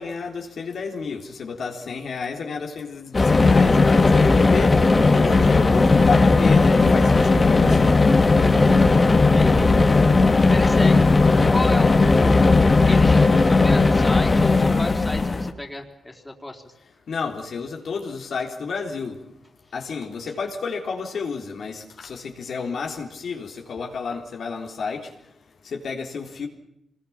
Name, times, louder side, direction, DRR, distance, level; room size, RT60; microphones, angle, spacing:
voice 1, 0.0-4.7 5.1-7.9 17.1-19.2 19.7-25.0 25.7-26.5, left 5 dB, 70° left, 1 dB, 3.6 m, -31 dB
sound 1, 3.1-15.5, left 3 dB, 35° left, 2.3 m, -16 dB
voice 2, 9.2-9.7 10.3-11.2 11.5-16.7, left 1 dB, 15° left, 3 dB, 4.1 m, -32 dB
25.0 x 20.5 x 7.3 m, 0.80 s
cardioid pair, 80°, 0 cm